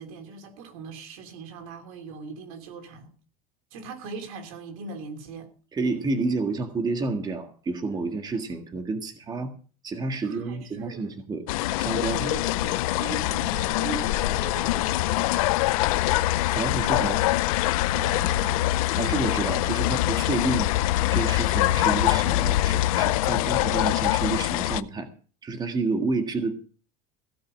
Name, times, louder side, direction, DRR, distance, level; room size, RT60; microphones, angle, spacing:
voice 1, 0.0-3.1 3.7-5.5 10.2-11.1 12.2-15.5 17.9-18.6, right 4 dB, 80° right, 3.1 m, -40 dB
voice 2, 5.7-9.5 9.8-11.4 11.8-12.3 16.5-17.2 19.0-20.8 21.1-25.1 25.4-26.5, right 3 dB, 25° right, 1.7 m, -29 dB
sound 1, 11.5-24.8, left 16 dB, 90° left, 0.6 m, -24 dB
16.0 x 5.6 x 8.8 m
supercardioid pair, 130°, 18 cm